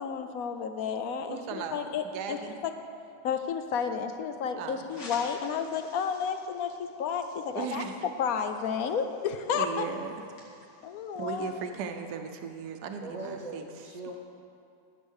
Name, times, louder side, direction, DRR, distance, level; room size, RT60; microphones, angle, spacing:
voice 1, 0.0-2.4 2.6-2.7 3.2-7.9 8.2-9.9 10.8-11.5, left 7 dB, 65° left, 8 dB, 1.0 m, -31 dB
voice 2, 1.3-2.6 4.6-5.0 7.5-8.1 9.5-10.5 11.1-13.6, right 6 dB, 70° right, 6 dB, 1.3 m, -37 dB
sound 1, 4.9-11.7, left 2 dB, 80° left, 2.8 m, -52 dB
voice 3, 13.0-14.2, right 2 dB, 50° right, -1 dB, 0.4 m, -40 dB
12.5 x 6.7 x 6.4 m, 2.5 s
omnidirectional pair, 1.9 m